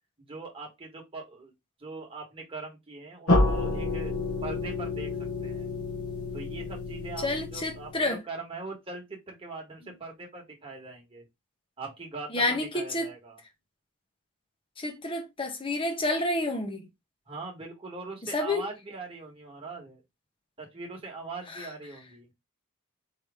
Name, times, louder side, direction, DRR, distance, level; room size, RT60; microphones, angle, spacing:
voice 1, 0.2-1.5 1.8-4.1 4.4-5.1 5.4-5.7 6.3-11.3 11.8-13.4 17.3-20.0 20.6-22.3, right 3 dB, 25° right, 1.5 m, -41 dB
sound 1, 3.3-8.1, left 2 dB, 65° left, 1.3 m, -29 dB
voice 2, 7.2-8.2 12.3-13.1 14.8-16.8 18.2-18.6 21.6-21.7, left 2 dB, 25° left, 1.0 m, -29 dB
4.7 x 3.1 x 3.5 m
head